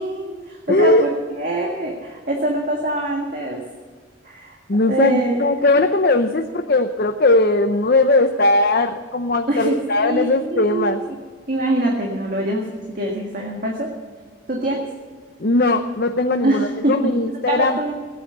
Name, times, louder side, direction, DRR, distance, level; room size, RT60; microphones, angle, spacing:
voice 1, 0.0-3.6 4.2-5.4 9.5-11.2 11.5-13.9 14.5-14.8 16.4-17.9, right 1 dB, 45° right, 0 dB, 1.8 m, -24 dB
voice 2, 0.7-1.1 4.7-11.0 15.4-17.8, left 2 dB, 50° left, 5 dB, 0.7 m, -18 dB
17.0 x 9.5 x 6.8 m, 1.5 s
head